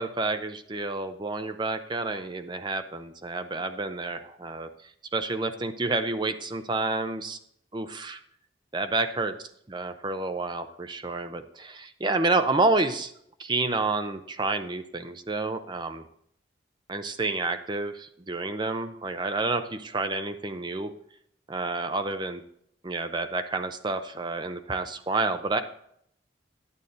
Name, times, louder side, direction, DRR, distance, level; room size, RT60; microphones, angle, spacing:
voice 1, 0.0-4.7 5.1-7.4 7.7-8.2 8.7-9.3 9.7-13.1 13.4-16.0 16.9-20.9 21.5-22.4 22.8-25.6, right 3 dB, 25° right, 9 dB, 0.5 m, -29 dB
10.5 x 8.0 x 3.9 m, 0.70 s
head